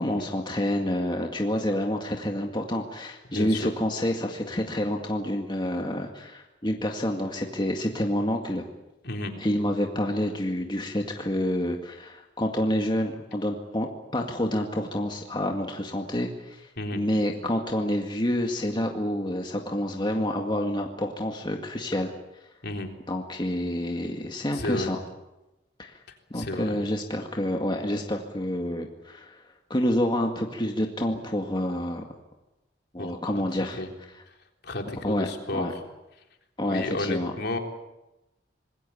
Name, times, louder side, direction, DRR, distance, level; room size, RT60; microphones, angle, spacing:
voice 1, 0.0-8.6 9.4-22.1 23.1-25.0 25.8-25.9 26.3-29.4 29.7-32.0 32.9-33.8 35.0-35.3 35.5-35.7 36.6-37.3, left 1 dB, 25° left, 2 dB, 2.1 m, -28 dB
voice 2, 3.3-3.7 9.0-9.3 16.8-17.0 22.6-22.9 24.5-24.9 26.1-26.8 33.0-33.4 33.8-33.9 34.3-34.4 34.6-35.8 36.6-37.6, left 2 dB, 60° left, 3 dB, 3.6 m, -33 dB
26.5 x 21.0 x 8.6 m, 0.98 s
head